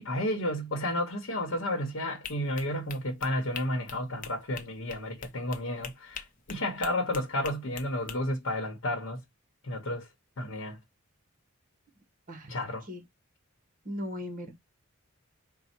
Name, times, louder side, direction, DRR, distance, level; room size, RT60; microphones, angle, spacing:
voice 1, 0.0-9.2 9.6-10.1 10.4-10.8 12.5-12.8, left 1 dB, 65° left, 0.9 m, -32 dB
sound 1, 2.2-8.2, left 6 dB, 40° left, 0.6 m, -44 dB
voice 2, 13.8-14.5, left 1 dB, 40° right, 1.0 m, -37 dB
4.3 x 2.1 x 4.1 m
head